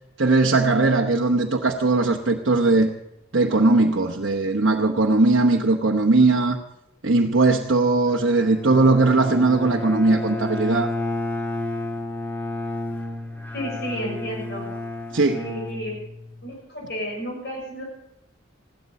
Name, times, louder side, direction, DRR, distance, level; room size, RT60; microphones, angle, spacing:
voice 1, 0.2-2.9 3.3-6.6 7.0-10.9 15.1-15.4, right 3 dB, 70° right, 1 dB, 1.0 m, -19 dB
Bowed string instrument, 8.1-16.5, left 2 dB, 10° left, 1.6 m, -31 dB
voice 2, 13.5-14.7 15.3-15.9 16.4-17.8, equal, 60° left, -1 dB, 6.5 m, -32 dB
15.5 x 12.5 x 6.5 m, 0.84 s
head